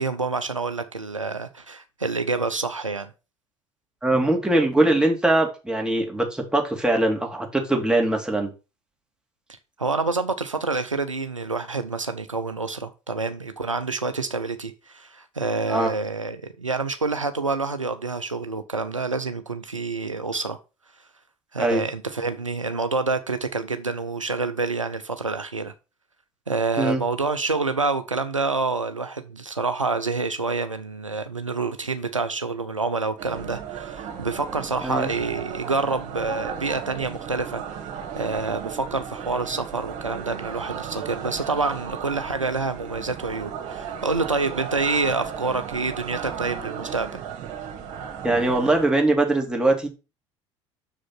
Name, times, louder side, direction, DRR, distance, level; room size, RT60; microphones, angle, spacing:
voice 1, 0.0-3.1 9.8-20.6 21.5-25.7 26.5-37.6 38.2-47.2, right 3 dB, 90° right, 0.5 m, -27 dB
voice 2, 4.0-8.5 15.7-15.9 21.6-21.8 26.8-27.0 34.8-35.1 48.2-49.9, right 2 dB, 5° right, 2.5 m, -21 dB
sound 1, 33.2-48.9, right 7 dB, 55° right, 1.9 m, -35 dB
6.7 x 5.0 x 5.6 m
figure-of-eight pair, 60°, 16 cm